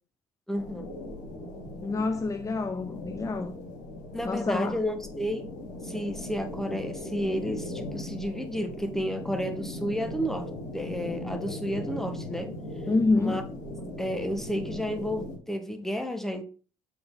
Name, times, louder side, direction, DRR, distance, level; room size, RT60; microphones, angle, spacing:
sound 1, 0.5-15.4, left 1 dB, 65° left, 2.6 m, -38 dB
voice 1, 0.5-0.9 2.7-2.8 4.1-5.5 5.8-12.5 13.1-13.4 14.0-16.4, equal, ahead, 1.3 m, -32 dB
voice 2, 1.8-3.6 4.2-4.8 12.9-13.4, left 3 dB, 20° left, 0.6 m, -27 dB
7.6 x 4.3 x 4.0 m
figure-of-eight pair, 50°, 18 cm